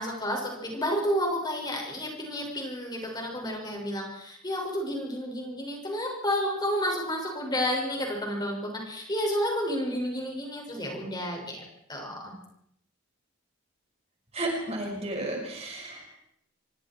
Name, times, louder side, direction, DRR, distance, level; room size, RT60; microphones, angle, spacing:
voice 1, 0.0-11.6 11.9-12.3, equal, 20° left, 0 dB, 6.3 m, -31 dB
voice 2, 14.3-16.1, right 1 dB, 30° right, 0 dB, 5.9 m, -32 dB
26.5 x 23.5 x 4.7 m, 0.72 s
head